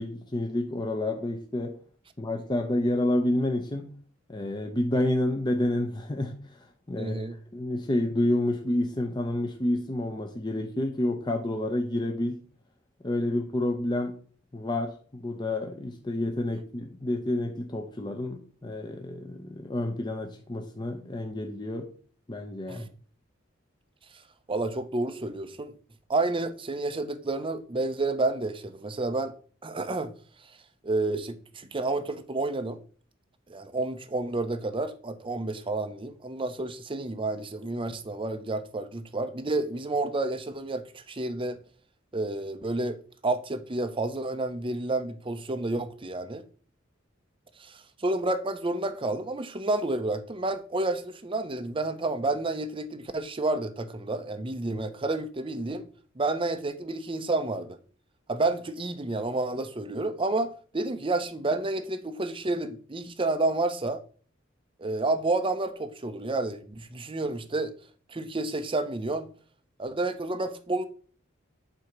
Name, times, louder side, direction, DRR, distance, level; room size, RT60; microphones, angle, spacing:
voice 1, 0.0-1.8 2.2-3.9 4.3-12.4 13.0-14.2 14.5-21.9 22.3-22.8, left 1 dB, 25° left, 0.8 m, -29 dB
voice 2, 7.0-7.4 22.7-22.9 24.5-25.7 26.1-29.3 29.6-30.1 30.8-32.8 33.5-41.6 42.1-43.0 43.2-46.4 47.6-55.8 56.2-57.8 58.3-64.0 64.8-67.7 68.1-69.3 69.8-70.9, right 2 dB, 25° right, 0.6 m, -30 dB
7.9 x 2.9 x 5.9 m
head